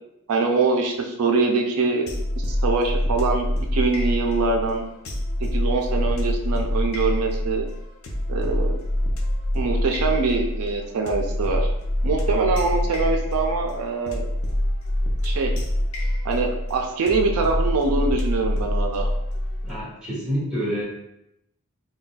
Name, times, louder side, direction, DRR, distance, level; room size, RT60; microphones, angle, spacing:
voice 1, 0.3-2.1 2.4-4.8 5.4-7.7 8.3-8.8 9.5-11.7 12.0-14.2 15.2-15.5 16.2-19.1, right 4 dB, 80° right, 2 dB, 0.4 m, -24 dB
sound 1, 2.1-19.8, left 1 dB, 75° left, 0.5 m, -25 dB
voice 2, 19.6-20.8, equal, 5° right, -10 dB, 1.3 m, -27 dB
3.9 x 2.2 x 2.2 m, 0.80 s
head